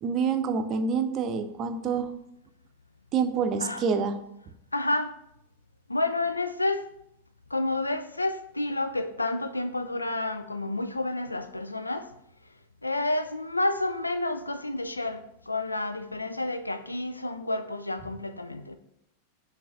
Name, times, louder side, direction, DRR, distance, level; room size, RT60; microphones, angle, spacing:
voice 1, 0.0-2.1 3.1-4.2, right 5 dB, 35° right, 0.6 m, -27 dB
voice 2, 4.7-5.1 5.9-6.9 7.5-12.1 12.8-18.8, left 2 dB, 85° left, 0.4 m, -30 dB
6.2 x 3.3 x 5.5 m
figure-of-eight pair, 90°, 0 cm